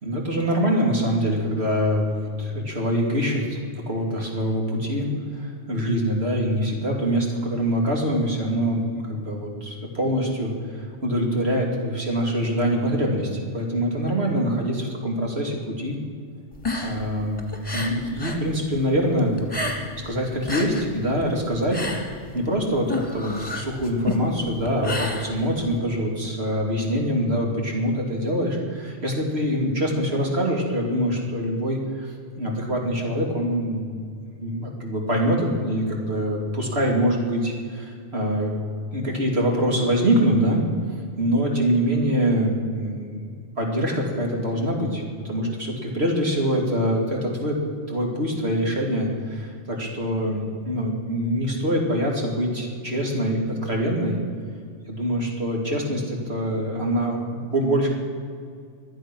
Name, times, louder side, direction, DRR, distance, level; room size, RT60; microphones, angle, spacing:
voice 1, 0.0-5.1 5.3-16.0 16.8-21.9 22.3-34.1 34.4-38.5 38.9-40.6 41.2-43.2 43.6-47.6 47.9-54.2 54.9-57.2 57.5-57.9, equal, 60° right, 0 dB, 2.9 m, -24 dB
sound 1, 16.5-18.5 18.7-20.1 20.3-25.8, left 2 dB, 20° left, 2.1 m, -30 dB
24.0 x 8.3 x 6.2 m, 2.2 s
omnidirectional pair, 1.2 m